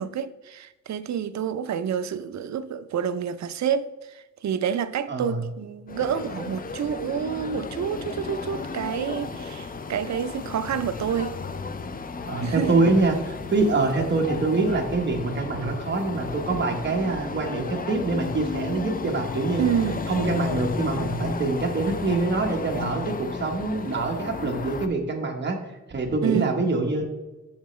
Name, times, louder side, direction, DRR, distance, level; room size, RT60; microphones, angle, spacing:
voice 1, 0.0-11.4 12.4-12.8 19.6-20.0 26.2-26.5, right 8 dB, 70° right, 0.4 m, -28 dB
voice 2, 5.1-5.4 12.3-19.6 20.1-25.6 25.9-27.0, right 3 dB, 40° right, 1.1 m, -25 dB
sound 1, 5.9-24.9, left 4 dB, 30° left, 0.4 m, -33 dB
7.2 x 6.7 x 3.1 m
wide cardioid pair, 175°, 29 cm